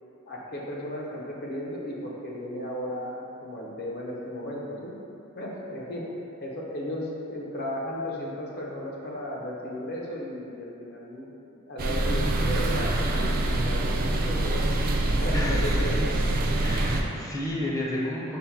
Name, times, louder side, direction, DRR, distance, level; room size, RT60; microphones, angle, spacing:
voice 1, 0.3-4.9 5.4-6.1 6.4-11.3 11.7-14.6 15.2-16.2, equal, 50° left, -3 dB, 0.7 m, -35 dB
sound 1, 11.8-17.0, right 1 dB, 45° right, 0.3 m, -25 dB
voice 2, 15.3-15.6 16.6-18.4, left 1 dB, 15° left, -5 dB, 0.6 m, -31 dB
5.3 x 2.1 x 4.4 m, 2.7 s
head